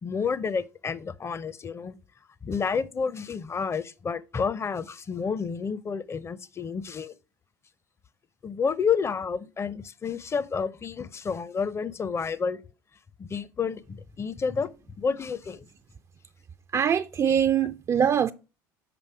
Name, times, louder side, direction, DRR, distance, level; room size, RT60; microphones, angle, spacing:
voice 1, 0.0-2.0 2.4-7.1 8.4-12.6 13.2-14.7 15.0-15.7, left 6 dB, 25° left, 0.6 m, -30 dB
voice 2, 16.7-18.3, right 8 dB, 30° right, 0.4 m, -23 dB
6.9 x 5.2 x 4.6 m
hypercardioid pair, 75°, 10 cm